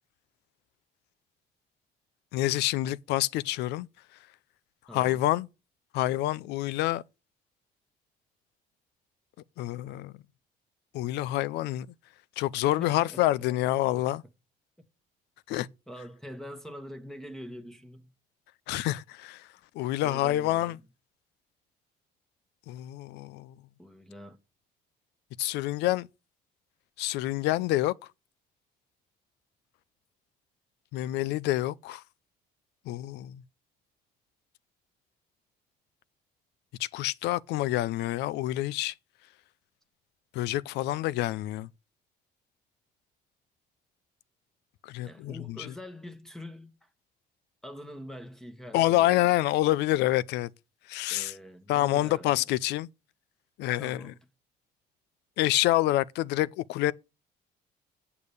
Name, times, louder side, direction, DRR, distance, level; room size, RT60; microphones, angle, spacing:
voice 1, 2.3-3.9 4.9-5.5 5.9-7.0 9.6-10.1 10.9-11.9 12.4-14.2 15.5-15.7 18.7-19.5 19.7-20.8 22.7-23.5 25.4-26.1 27.0-27.9 30.9-32.0 32.9-33.4 36.8-38.9 40.3-41.7 44.8-45.7 48.7-50.5 50.9-51.3 51.7-52.9 53.6-54.1 55.4-56.9, left 15 dB, 85° left, 0.5 m, -27 dB
voice 2, 4.9-5.2 12.8-13.3 15.9-18.1 20.0-20.8 23.8-24.4 45.0-46.9 47.6-49.3 51.1-52.4 53.8-54.3, equal, 5° left, 1.3 m, -44 dB
8.4 x 7.0 x 6.7 m
cardioid pair, 110°, 17 cm